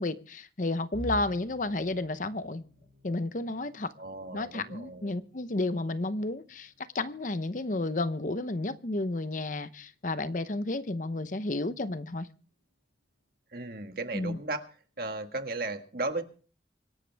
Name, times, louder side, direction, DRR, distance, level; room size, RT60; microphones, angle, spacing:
voice 1, 0.0-2.6 3.0-3.9 4.3-12.3 14.1-14.4, left 2 dB, 45° left, 13 dB, 0.8 m, -32 dB
sound 1, 0.9-12.8 13.2-13.5 13.8-14.0 14.9-15.3, equal, 75° right, 7.9 m, -50 dB
voice 2, 4.0-5.2 13.5-14.7 15.0-16.2, right 2 dB, 55° right, 7 dB, 1.6 m, -35 dB
25.0 x 11.5 x 3.4 m, 0.39 s
head